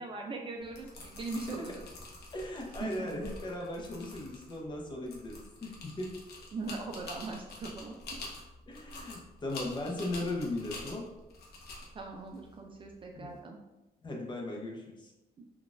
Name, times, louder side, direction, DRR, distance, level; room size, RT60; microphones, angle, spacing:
voice 1, 0.0-1.8 2.8-3.1 6.5-8.0 8.3-8.4 11.9-13.6 15.4-15.5, right 3 dB, 30° right, 1 dB, 0.3 m, -40 dB
sound 1, 0.6-13.3, left 2 dB, 80° left, 0.8 m, -47 dB
voice 2, 2.3-6.2 8.7-11.0 13.1-13.3 14.0-15.1, left 1 dB, 30° left, -1 dB, 0.6 m, -38 dB
3.9 x 2.3 x 2.4 m, 1.0 s
cardioid pair, 135°, 16 cm